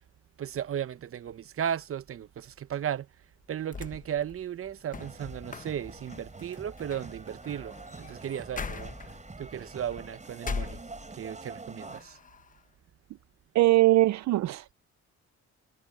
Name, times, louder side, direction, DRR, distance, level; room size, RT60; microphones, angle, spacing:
voice 1, 0.4-3.1 3.5-8.9 9.4-10.8 11.1-12.2, right 9 dB, 45° right, 0.9 m, -35 dB
sound 1, 3.4-11.4 11.8-12.6, left 5 dB, 25° left, 1.0 m, -42 dB
sound 2, 4.9-12.0, right 3 dB, 25° right, 6.1 m, -46 dB
voice 2, 13.5-14.7, right 18 dB, 65° right, 0.5 m, -21 dB
cardioid pair, 90°, 30 cm